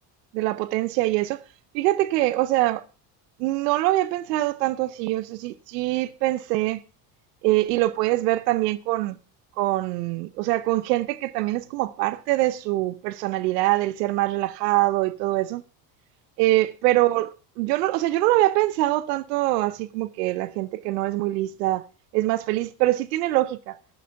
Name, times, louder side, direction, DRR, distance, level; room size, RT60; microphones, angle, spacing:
voice 1, 0.3-1.4 1.7-2.8 3.4-6.8 7.4-9.2 9.6-15.6 16.4-21.9 22.1-23.8, right 17 dB, 90° right, 0.8 m, -24 dB
13.5 x 6.1 x 5.7 m
supercardioid pair, 75°, 47 cm